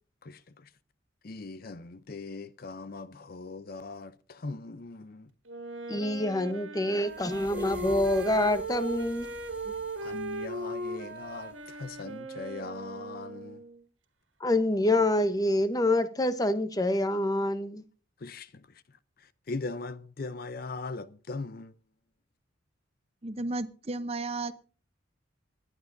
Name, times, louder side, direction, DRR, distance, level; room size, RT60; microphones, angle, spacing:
voice 1, 0.2-0.7 1.2-5.3 10.0-13.6 18.2-21.7, left 3 dB, 45° left, 0.6 m, -40 dB
Wind instrument woodwind instrument, 5.4-13.8, right 1 dB, 70° right, 2.0 m, -38 dB
voice 2, 5.9-9.3 14.4-17.8, left 1 dB, 20° left, 0.8 m, -26 dB
sound 1, 7.0-12.1, right 1 dB, 10° right, 1.7 m, -50 dB
voice 3, 23.2-24.5, right 2 dB, 30° right, 0.7 m, -33 dB
25.0 x 10.5 x 2.6 m
head